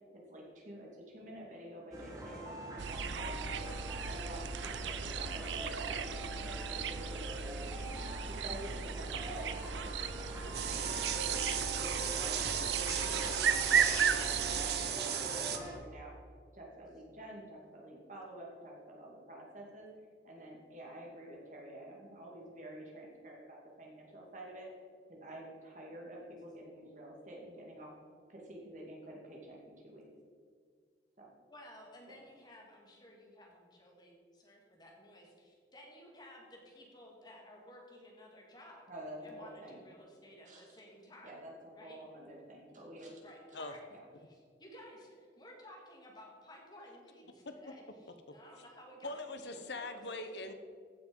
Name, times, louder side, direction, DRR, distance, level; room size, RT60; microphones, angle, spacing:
voice 1, 0.1-3.7 4.0-7.9 8.3-11.5 11.8-16.1 16.5-19.9 20.2-24.7 25.1-27.9 28.3-30.1 31.2-31.3 38.9-39.8 40.5-40.8 41.2-43.2 43.5-43.6 43.9-44.0, right 1 dB, 45° right, -2 dB, 2.4 m, -49 dB
sound 1, 1.9-15.7, right 1 dB, 20° right, 1.9 m, -44 dB
sound 2, 2.8-14.7, right 6 dB, 90° right, 0.6 m, -36 dB
sound 3, 10.5-15.6, right 8 dB, 60° right, 0.8 m, -35 dB
voice 2, 31.5-38.9 39.2-41.4 41.8-42.0 43.2-43.8 44.6-49.4 49.8-50.4, left 1 dB, 25° left, -1 dB, 2.1 m, -55 dB
voice 3, 49.0-50.5, left 2 dB, 75° left, 8 dB, 0.9 m, -41 dB
15.0 x 6.1 x 5.3 m, 2.1 s
head